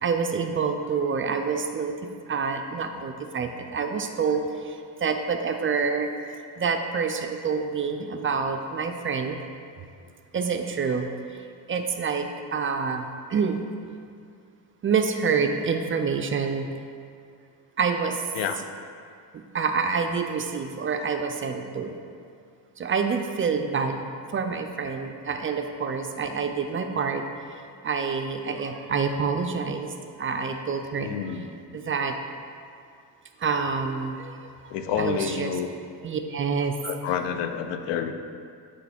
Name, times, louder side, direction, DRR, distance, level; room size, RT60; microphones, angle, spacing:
voice 1, 0.0-2.0 2.3-6.1 6.6-9.4 10.3-11.4 11.7-13.6 14.8-16.7 17.8-18.2 19.5-21.9 22.8-24.0 24.3-27.3 27.8-31.4 31.7-32.2 33.4-34.7 35.0-35.5 36.0-36.8, right 5 dB, 30° right, 6 dB, 0.4 m, -27 dB
voice 2, 31.0-31.8 34.7-35.7 36.8-38.1, left 8 dB, 75° left, 7 dB, 0.6 m, -29 dB
8.0 x 3.1 x 4.3 m, 2.3 s
supercardioid pair, 85°, 42 cm